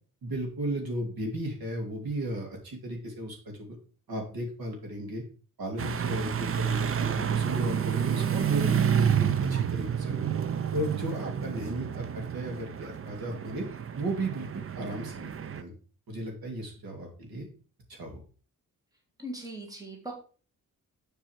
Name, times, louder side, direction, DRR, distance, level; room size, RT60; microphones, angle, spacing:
voice 1, 0.2-3.8 4.1-5.2 5.6-10.3 10.7-13.6 13.9-15.7 16.1-17.5 17.9-18.2, right 1 dB, 80° right, 1 dB, 3.0 m, -35 dB
sound 1, 5.8-15.6, right 8 dB, 40° right, 0.5 m, -29 dB
voice 2, 19.2-20.1, right 1 dB, 10° right, 1 dB, 1.8 m, -39 dB
7.6 x 4.7 x 6.3 m, 0.39 s
wide cardioid pair, 175°, 36 cm